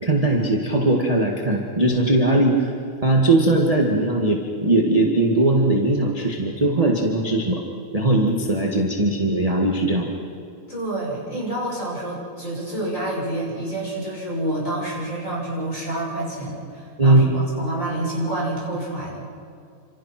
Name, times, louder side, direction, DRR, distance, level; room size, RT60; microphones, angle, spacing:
voice 1, 0.0-2.7 3.0-7.6 7.9-10.1 17.0-17.3, right 2 dB, 15° right, -1 dB, 1.2 m, -19 dB
voice 2, 10.7-19.3, right 1 dB, 20° left, -3 dB, 6.9 m, -28 dB
29.0 x 27.0 x 6.0 m, 2.5 s
omnidirectional pair, 3.8 m